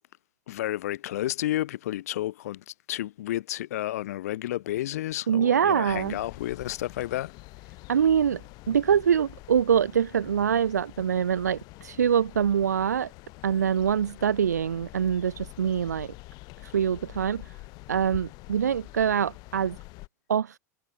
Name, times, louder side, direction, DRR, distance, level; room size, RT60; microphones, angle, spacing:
voice 1, 0.5-7.3, left 14 dB, 60° left, 3.0 m, -31 dB
voice 2, 5.3-6.1 7.9-8.4 8.7-13.1 13.4-16.1 16.6-17.6 17.9-19.8 20.3-20.6, right 8 dB, 75° right, 0.8 m, -24 dB
sound 1, 5.9-20.1, left 24 dB, 45° left, 5.7 m, -46 dB
figure-of-eight pair, 85°, 9 cm